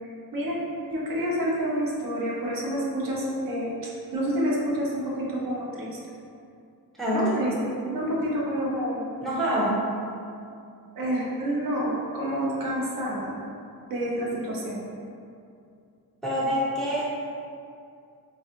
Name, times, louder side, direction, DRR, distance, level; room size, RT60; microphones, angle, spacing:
voice 1, 0.0-0.6 0.9-3.7 4.1-6.0 7.1-7.5 7.8-9.1 11.0-13.3 13.9-14.8, equal, 65° right, -4 dB, 0.7 m, -28 dB
voice 2, 7.0-7.3 9.2-9.9 16.2-17.0, equal, ahead, -9 dB, 0.5 m, -25 dB
3.3 x 2.4 x 2.8 m, 2.5 s
wide cardioid pair, 150°, 37 cm